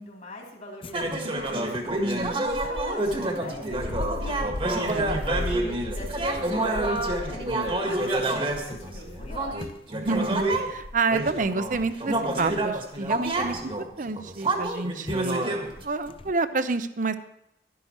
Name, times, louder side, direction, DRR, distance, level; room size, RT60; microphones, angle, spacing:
voice 1, 0.0-9.9, left 1 dB, 45° left, -1 dB, 3.2 m, -43 dB
sound 1, 0.8-14.0 14.7-14.8 15.1-15.3 15.7-16.3, left 2 dB, 30° left, 0.5 m, -38 dB
sound 2, 0.9-10.7 11.1-15.8, right 2 dB, 30° right, 1.6 m, -28 dB
voice 2, 2.0-2.5 4.8-5.2 10.0-13.6 14.0-15.4 15.8-17.2, right 3 dB, 45° right, 11 dB, 0.7 m, -28 dB
11.5 x 11.0 x 4.4 m, 0.83 s
head